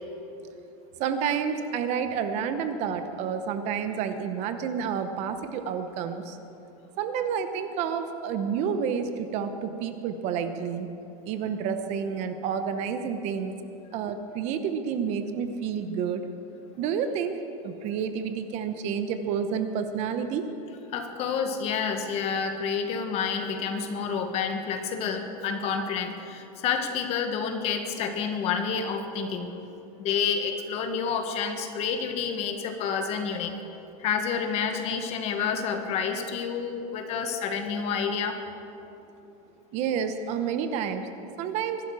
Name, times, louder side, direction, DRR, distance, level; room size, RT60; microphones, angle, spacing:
voice 1, 1.0-6.4 7.0-10.9 11.2-13.5 13.9-16.2 16.8-17.4 17.6-20.5 39.7-41.1 41.4-41.8, right 7 dB, 35° right, 8 dB, 0.9 m, -29 dB
voice 2, 20.9-29.5 30.0-33.5 34.0-38.4, left 6 dB, 35° left, 5 dB, 1.5 m, -29 dB
24.0 x 12.5 x 4.8 m, 2.8 s
supercardioid pair, 155°, 19 cm